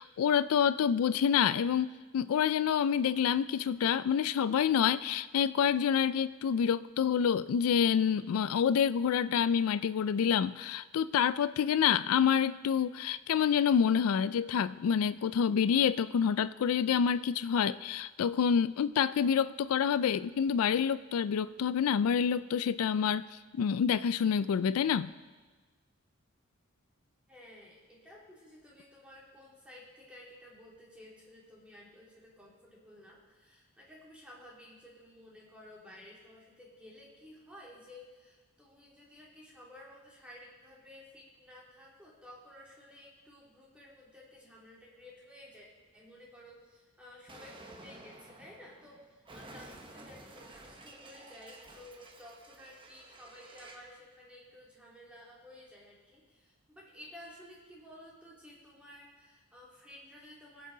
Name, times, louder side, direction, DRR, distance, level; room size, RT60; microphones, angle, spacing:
voice 1, 0.0-23.3 23.5-25.1, left 7 dB, 85° left, 15 dB, 0.3 m, -27 dB
voice 2, 27.3-45.7 45.9-60.7, left 1 dB, 5° right, -5 dB, 2.7 m, -54 dB
Explosion, 47.3-53.9, right 2 dB, 25° right, 0.9 m, -52 dB
21.0 x 7.7 x 3.9 m, 1.3 s
head